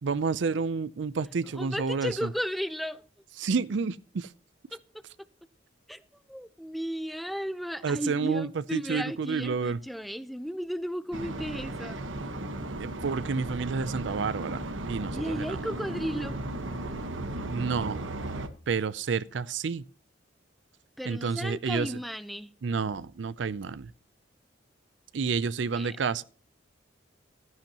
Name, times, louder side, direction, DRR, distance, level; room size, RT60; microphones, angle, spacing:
voice 1, 0.0-2.3 3.4-4.3 7.8-9.8 12.8-14.6 14.9-15.7 17.5-18.0 18.7-19.8 21.0-22.0 22.6-23.9 25.1-26.2, right 5 dB, 65° right, 0.5 m, -30 dB
voice 2, 1.6-3.0 4.7-4.8 5.9-6.0 6.3-12.0 15.1-16.4 21.0-22.5 25.7-26.0, equal, ahead, 0.6 m, -34 dB
sound 1, 11.1-18.5, right 1 dB, 80° right, 1.2 m, -36 dB
13.5 x 10.5 x 2.9 m
head